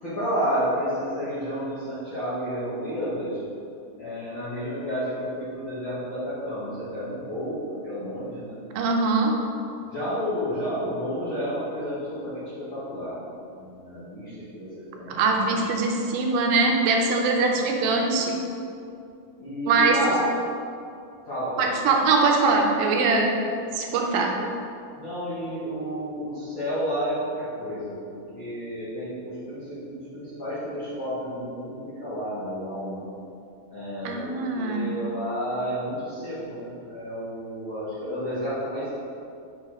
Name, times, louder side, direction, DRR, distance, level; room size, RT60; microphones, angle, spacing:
voice 1, 0.0-3.4 4.0-8.6 9.9-13.2 13.5-15.6 19.4-20.2 21.3-21.7 25.0-33.1 33.7-38.9, equal, 50° left, -12 dB, 1.4 m, -31 dB
voice 2, 8.8-9.4 15.1-18.4 19.7-20.0 21.6-23.3 23.7-24.3 34.1-34.9, right 3 dB, 80° right, 1 dB, 2.3 m, -22 dB
6.3 x 4.2 x 4.8 m, 2.5 s
omnidirectional pair, 4.2 m